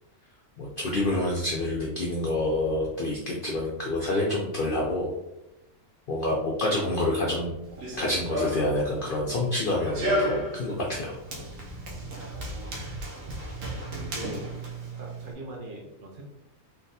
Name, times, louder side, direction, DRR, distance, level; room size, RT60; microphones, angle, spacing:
voice 1, 0.6-5.1 6.1-7.5 8.0-11.2, left 1 dB, 75° left, -3 dB, 0.4 m, -27 dB
Run, 7.6-15.3, equal, 70° right, 1.0 m, -34 dB
voice 2, 12.1-13.3 14.1-14.5 15.0-16.3, right 1 dB, 50° right, -1 dB, 0.7 m, -43 dB
3.6 x 2.3 x 2.6 m, 0.93 s
omnidirectional pair, 1.5 m